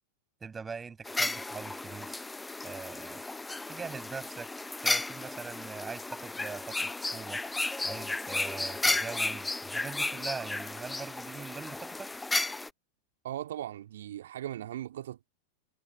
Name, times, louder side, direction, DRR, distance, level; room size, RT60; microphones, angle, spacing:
voice 1, 0.4-2.3 2.6-3.2 3.7-4.5 4.8-12.1, right 5 dB, 15° right, 7.0 m, -42 dB
sound 1, 1.1-12.7, left 2 dB, 10° left, 0.8 m, -34 dB
voice 2, 13.2-15.3, right 12 dB, 60° right, 2.1 m, -38 dB
figure-of-eight pair, 90°, 0 cm